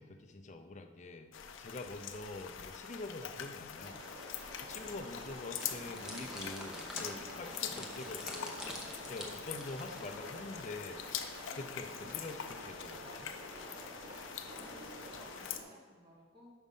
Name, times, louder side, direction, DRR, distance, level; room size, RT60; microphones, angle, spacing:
voice 1, 0.0-4.0 4.6-8.6 9.1-11.0 11.5-13.3, left 2 dB, 40° left, 6 dB, 0.5 m, -46 dB
sound 1, 1.3-15.6, left 8 dB, 90° left, 0.5 m, -44 dB
sound 2, 3.7-15.6, right 1 dB, 75° right, 1.7 m, -50 dB
sound 3, 5.6-10.3, left 1 dB, 5° right, 0.8 m, -47 dB
voice 2, 14.5-16.5, left 1 dB, 25° right, -4 dB, 1.5 m, -58 dB
5.3 x 5.0 x 5.4 m, 1.4 s
head